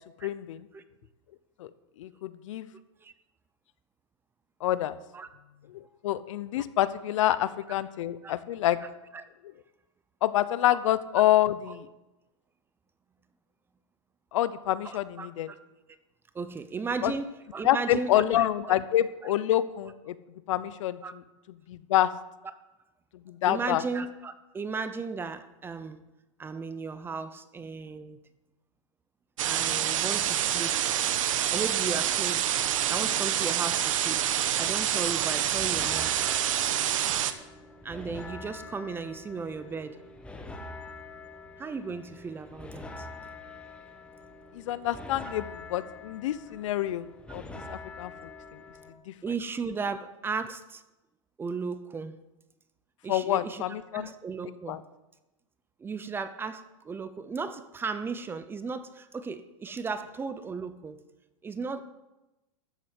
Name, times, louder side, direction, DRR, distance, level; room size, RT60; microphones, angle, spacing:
voice 1, 0.2-0.7 1.6-1.7 2.0-2.7 4.6-5.0 6.0-8.8 10.2-11.9 14.3-15.5 17.0-17.1 17.6-20.1 20.5-21.2 21.7-22.1 23.3-23.8 44.5-47.4 47.7-48.1 48.5-48.6 49.1-49.2 53.1-54.1 54.7-54.8, left 13 dB, 70° left, 0.9 m, -27 dB
voice 2, 14.8-15.6 16.3-18.7 21.0-21.1 23.4-26.0 26.4-28.2 29.4-30.8 31.1-31.2 31.5-32.5 32.9-36.1 37.8-40.0 41.6-43.1 49.2-50.8 51.4-52.2 53.0-53.6 53.9-54.8 55.8-61.0 61.4-61.8, right 4 dB, 15° right, 0.7 m, -35 dB
sound 1, 29.4-37.3, right 11 dB, 75° right, 1.2 m, -27 dB
sound 2, 34.9-48.9, left 3 dB, 5° left, 1.3 m, -45 dB
13.5 x 7.6 x 8.3 m
supercardioid pair, 145°, 17 cm